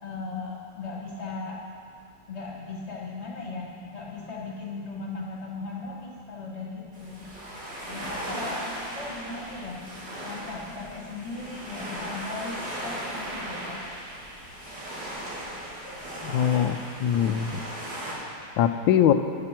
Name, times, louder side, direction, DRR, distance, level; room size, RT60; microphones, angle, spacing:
voice 1, 0.0-1.6 2.3-7.3 7.9-9.8 10.2-13.8, left 3 dB, 35° left, -3 dB, 2.0 m, -37 dB
sound 1, 6.9-18.1, right 1 dB, 65° right, 3.0 m, -37 dB
voice 2, 16.2-17.7 18.6-19.1, left 9 dB, 85° left, 9 dB, 1.3 m, -22 dB
11.5 x 10.5 x 4.5 m, 2.3 s
omnidirectional pair, 2.0 m